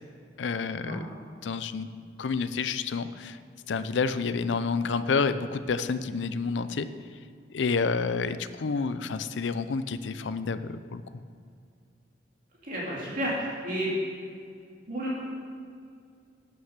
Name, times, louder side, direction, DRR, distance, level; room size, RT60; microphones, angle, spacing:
voice 1, 0.4-1.0 1.4-1.9 2.2-3.4 3.7-6.9 7.5-11.0, left 4 dB, 70° left, 13 dB, 0.5 m, -29 dB
voice 2, 12.6-13.9 14.9-15.2, right 1 dB, 50° right, -6 dB, 2.4 m, -31 dB
11.5 x 6.5 x 6.6 m, 2.3 s
head